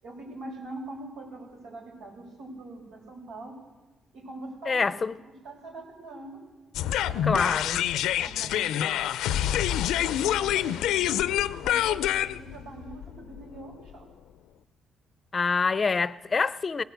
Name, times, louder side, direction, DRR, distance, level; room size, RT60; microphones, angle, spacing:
voice 1, 0.0-3.6 4.1-6.4 7.0-11.2 11.6-14.1, right 2 dB, 90° right, 7.0 m, -44 dB
voice 2, 4.7-5.2 7.2-7.9 15.3-16.8, left 4 dB, 35° left, 0.6 m, -26 dB
sound 1, 6.7-13.9, left 11 dB, 90° left, 0.6 m, -26 dB
19.0 x 17.5 x 8.1 m
cardioid pair, 90°, 0 cm